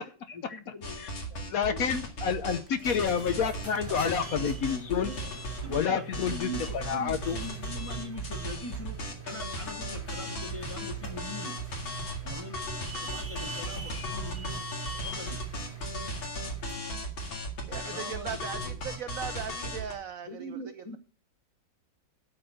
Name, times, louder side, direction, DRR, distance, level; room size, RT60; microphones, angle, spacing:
voice 1, 0.0-1.9 5.0-9.0 9.3-11.6 12.2-14.7 14.9-15.4 17.8-18.8 19.3-19.8 20.2-21.0, equal, 25° left, 0.8 m, -43 dB
sound 1, 0.8-5.9 6.1-19.9, equal, 85° left, 2.9 m, -36 dB
voice 2, 1.5-5.1 5.7-6.5 6.7-7.4, left 7 dB, 65° left, 0.9 m, -29 dB
sound 2, 2.7-16.9, right 6 dB, 10° right, 1.2 m, -43 dB
voice 3, 17.7-20.6, right 7 dB, 75° right, 0.7 m, -38 dB
12.0 x 4.2 x 7.5 m
omnidirectional pair, 2.1 m